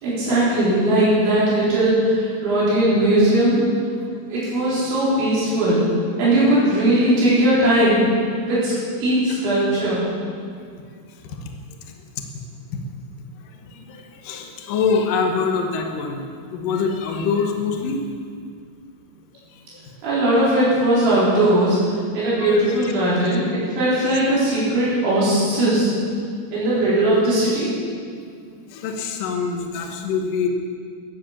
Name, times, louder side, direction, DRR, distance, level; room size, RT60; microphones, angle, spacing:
voice 1, 0.0-3.6 4.3-5.8 6.2-8.1 8.4-8.7 9.0-10.0 20.0-21.8 22.1-25.9 26.5-27.8, right 1 dB, 65° right, -9 dB, 6.4 m, -19 dB
voice 2, 13.7-16.3 16.5-18.0 22.4-22.9 28.7-30.5, left 5 dB, 85° left, 2 dB, 1.9 m, -24 dB
15.5 x 10.0 x 7.3 m, 2.2 s
omnidirectional pair, 5.8 m